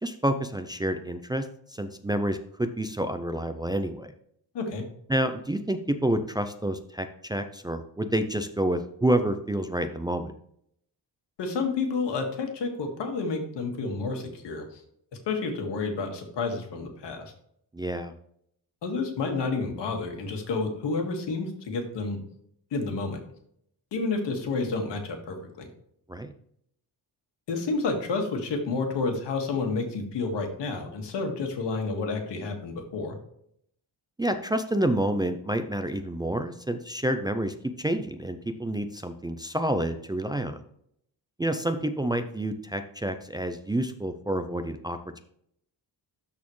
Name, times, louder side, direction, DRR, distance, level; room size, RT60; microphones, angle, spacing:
voice 1, 0.0-4.1 5.1-10.3 17.7-18.1 26.1-26.3 34.2-40.6 41.4-45.0, right 1 dB, 10° right, 7 dB, 0.3 m, -28 dB
voice 2, 11.4-14.8 15.3-17.3 18.8-22.2 22.7-23.2 23.9-25.7 27.5-33.2, left 4 dB, 80° left, 4 dB, 1.8 m, -30 dB
12.5 x 4.2 x 3.1 m, 0.69 s
wide cardioid pair, 160°, 42 cm